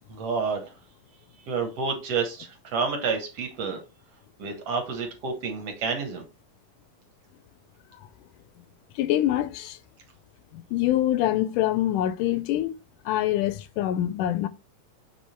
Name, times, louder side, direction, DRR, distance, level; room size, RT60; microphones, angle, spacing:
voice 1, 0.1-0.6 1.5-3.8 4.4-6.2, right 5 dB, 55° right, 2.3 m, -29 dB
voice 2, 9.0-9.8 10.5-12.7 13.1-14.5, left 13 dB, 90° left, 2.2 m, -25 dB
7.5 x 3.7 x 4.4 m
omnidirectional pair, 3.7 m